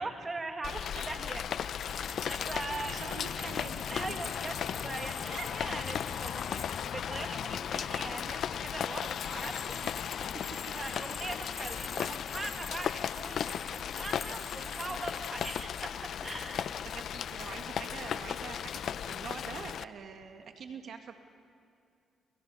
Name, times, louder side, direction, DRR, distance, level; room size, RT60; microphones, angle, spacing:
voice 1, 0.0-1.8 2.3-3.2 3.9-9.7 10.7-16.9, right 3 dB, 25° right, 5 dB, 2.0 m, -41 dB
Rain, 0.6-19.8, left 8 dB, 65° left, 0.6 m, -36 dB
sound 1, 1.5-6.8 8.7-15.8, left 3 dB, 25° left, 0.9 m, -47 dB
voice 2, 2.7-4.2 5.3-5.5 9.7-10.1 16.8-21.1, right 6 dB, 60° right, 5 dB, 1.9 m, -45 dB
28.5 x 27.0 x 5.6 m, 2.5 s
cardioid pair, 90°, 0 cm